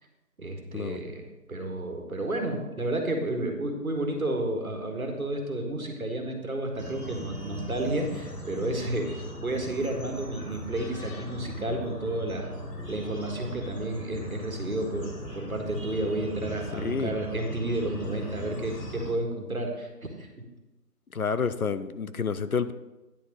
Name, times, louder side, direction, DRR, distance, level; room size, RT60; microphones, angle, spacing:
voice 1, 0.4-12.5 12.9-20.3, right 2 dB, 60° right, 3 dB, 1.6 m, -31 dB
sound 1, 6.8-19.1, left 1 dB, 80° left, 2.4 m, -39 dB
voice 2, 16.7-17.1 21.1-22.7, left 5 dB, 65° left, 13 dB, 0.5 m, -29 dB
10.0 x 4.0 x 6.2 m, 1.1 s
figure-of-eight pair, 180°, 48 cm